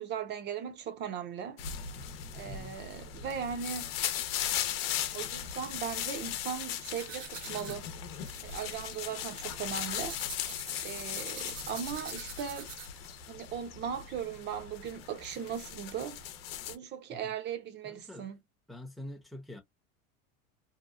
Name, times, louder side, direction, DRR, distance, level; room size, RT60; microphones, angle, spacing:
voice 1, 0.0-1.6 2.3-3.9 5.1-7.9 8.4-10.2 10.8-12.7 13.3-16.2 16.7-18.4, right 8 dB, 35° right, 0.8 m, -38 dB
sound 1, 1.6-16.8, left 10 dB, 80° left, 0.8 m, -38 dB
voice 2, 2.5-2.8 17.1-17.3 17.8-18.3 18.7-19.6, left 1 dB, ahead, 0.7 m, -45 dB
sound 2, 6.9-13.1, right 8 dB, 75° right, 1.1 m, -47 dB
2.8 x 2.3 x 2.3 m
supercardioid pair, 130°, 30 cm